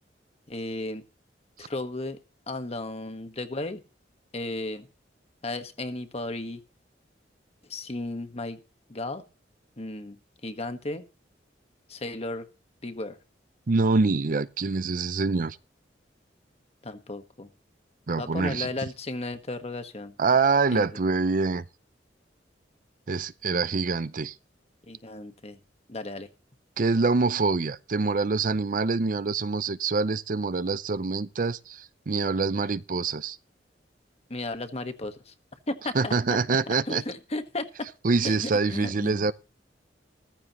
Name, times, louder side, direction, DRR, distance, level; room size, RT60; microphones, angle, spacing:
voice 1, 0.5-1.0 1.6-2.2 2.5-3.8 4.3-4.9 5.4-6.6 7.7-8.6 8.9-9.2 9.8-10.1 10.4-11.0 11.9-12.5 12.8-13.2 16.8-17.5 18.2-20.1 20.7-20.9 24.9-25.6 25.9-26.3 34.3-35.3 35.7-36.1 36.7-37.9 38.2-39.3, left 2 dB, 35° left, 1.3 m, -34 dB
voice 2, 13.7-15.6 18.1-18.7 20.2-21.7 23.1-24.3 26.8-33.4 35.9-37.0 38.0-39.3, right 4 dB, 50° right, 0.6 m, -25 dB
14.5 x 14.5 x 3.0 m
head